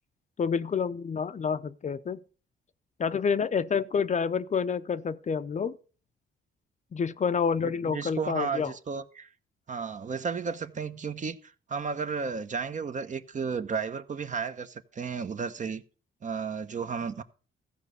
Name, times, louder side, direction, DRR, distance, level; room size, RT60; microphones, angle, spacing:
voice 1, 0.4-2.2 3.0-5.8 6.9-8.7, left 6 dB, 35° left, 0.6 m, -28 dB
voice 2, 7.6-9.3 9.7-15.8 16.2-17.2, right 5 dB, 40° right, 1.0 m, -33 dB
14.5 x 5.1 x 6.7 m
cardioid pair, 90°, 20 cm